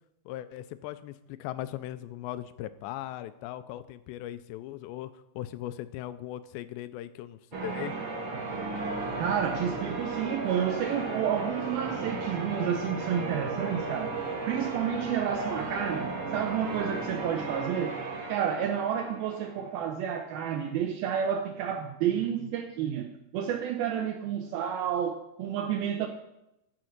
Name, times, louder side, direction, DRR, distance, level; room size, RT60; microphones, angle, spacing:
voice 1, 0.3-7.9, left 13 dB, 90° left, 13 dB, 2.9 m, -39 dB
Church bell, 7.5-19.8, right 3 dB, 50° right, 1.9 m, -35 dB
voice 2, 9.2-14.2 14.5-18.0 18.3-26.1, right 8 dB, 80° right, 5 dB, 2.2 m, -30 dB
14.0 x 6.2 x 5.9 m, 0.87 s
omnidirectional pair, 4.9 m